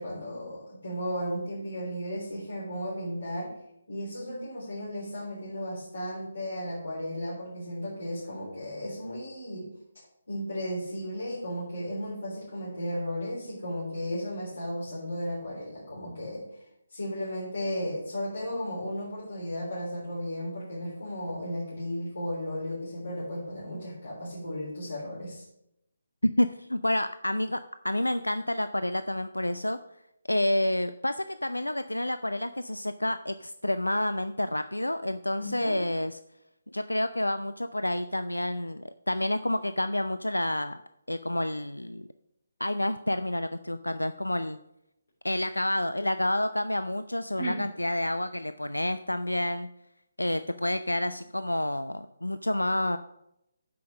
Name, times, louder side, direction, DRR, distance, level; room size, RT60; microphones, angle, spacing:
voice 1, 0.0-3.5 3.9-9.7 10.3-16.5 16.9-25.4 35.4-35.8 47.4-47.6, equal, 70° left, -6 dB, 3.6 m, -34 dB
voice 2, 26.2-29.8 30.3-36.2 36.7-40.8 41.1-42.1 42.6-44.6 45.2-49.7 50.2-53.0, left 1 dB, 85° left, 12 dB, 0.4 m, -29 dB
8.3 x 5.9 x 6.2 m, 0.80 s
figure-of-eight pair, 145°, 0 cm